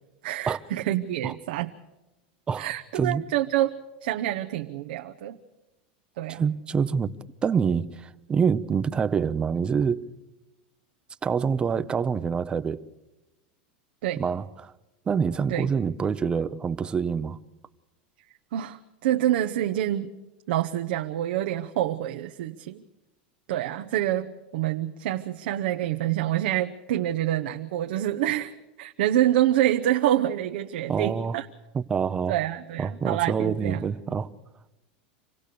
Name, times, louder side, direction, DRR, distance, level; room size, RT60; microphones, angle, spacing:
voice 1, 0.2-1.7 2.6-3.7 4.0-5.4 6.2-6.4 14.0-14.2 15.5-15.7 18.5-20.1 20.5-22.8 23.5-31.5 32.3-33.8 34.1-34.2, right 13 dB, 75° right, 0.9 m, -27 dB
voice 2, 6.3-7.1 7.4-10.1 11.2-12.8 14.2-14.7 15.1-17.4 30.9-31.4 31.7-32.3 32.8-34.3, right 6 dB, 20° right, 0.7 m, -26 dB
26.5 x 17.0 x 6.8 m
supercardioid pair, 145°, 5 cm